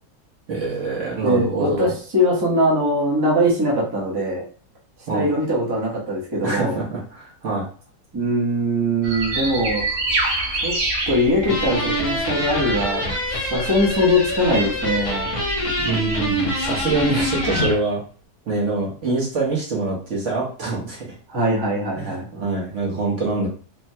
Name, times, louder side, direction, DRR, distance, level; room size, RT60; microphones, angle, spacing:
voice 1, 0.5-1.9 5.1-5.3 6.4-7.7 15.8-18.0 18.5-21.0 21.9-23.5, right 3 dB, 55° right, -4 dB, 1.1 m, -25 dB
voice 2, 1.2-4.4 5.1-6.8 8.1-9.8 10.6-10.8 11.1-15.3 21.3-22.3, equal, 20° right, -4 dB, 0.7 m, -21 dB
sound 1, 9.0-17.7, right 2 dB, 80° right, 1.2 m, -28 dB
sound 2, 11.4-17.8, left 1 dB, 60° left, 1.1 m, -25 dB
3.2 x 2.1 x 2.7 m, 0.42 s
omnidirectional pair, 1.6 m